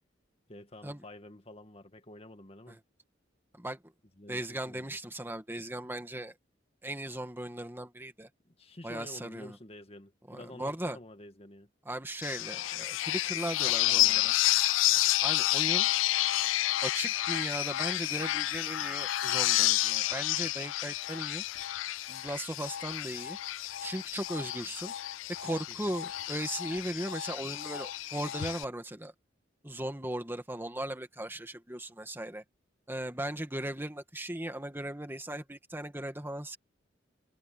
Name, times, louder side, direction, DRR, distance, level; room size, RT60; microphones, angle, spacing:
voice 1, 0.5-2.8 4.2-5.0 8.4-11.7 13.6-14.3, left 1 dB, 30° left, 2.0 m, -49 dB
voice 2, 3.5-3.9 4.3-6.3 6.8-8.3 8.8-9.6 10.3-11.0 11.9-14.3 15.2-15.9 16.8-21.4 22.1-23.4 23.8-24.9 25.4-29.1 29.6-32.4 32.9-36.6, right 1 dB, 10° right, 2.1 m, -37 dB
sound 1, 12.2-28.6, left 16 dB, 90° left, 0.3 m, -30 dB
head